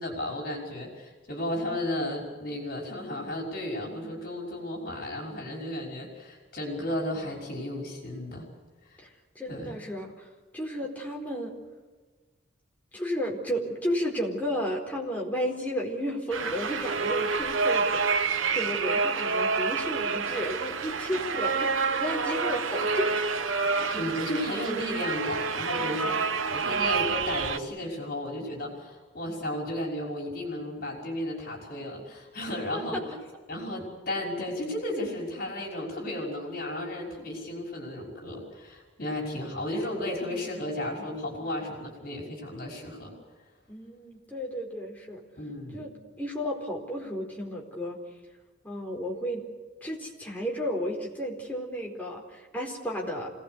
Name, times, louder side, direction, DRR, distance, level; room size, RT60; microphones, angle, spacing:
voice 1, 0.0-8.5 8.9-9.0 9.5-9.8 23.9-33.2 33.5-43.1 45.4-46.0, left 1 dB, 50° left, 0 dB, 5.8 m, -34 dB
voice 2, 9.3-10.1 10.5-11.5 12.9-17.9 18.5-23.2 32.7-33.0 43.7-45.2 45.7-45.9 46.2-48.0 48.6-49.4 49.8-53.3, equal, 10° left, -1 dB, 4.4 m, -33 dB
sound 1, 16.3-27.6, right 4 dB, 85° right, 1.1 m, -28 dB
27.0 x 18.5 x 8.2 m, 1.3 s
head